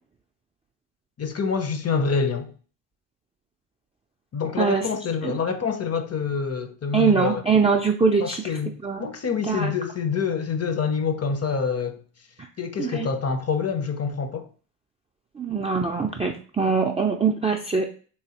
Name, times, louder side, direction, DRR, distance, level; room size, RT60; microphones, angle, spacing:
voice 1, 1.2-2.5 4.3-7.4 8.2-12.0 12.6-14.5, left 5 dB, 30° left, 0.6 m, -26 dB
voice 2, 4.6-4.9 5.2-5.4 6.9-8.6 8.8-9.1 9.5-9.7 12.4-12.5 12.8-13.1 15.4-17.9, right 5 dB, 15° right, 0.3 m, -23 dB
3.2 x 3.1 x 2.8 m
supercardioid pair, 65°, 49 cm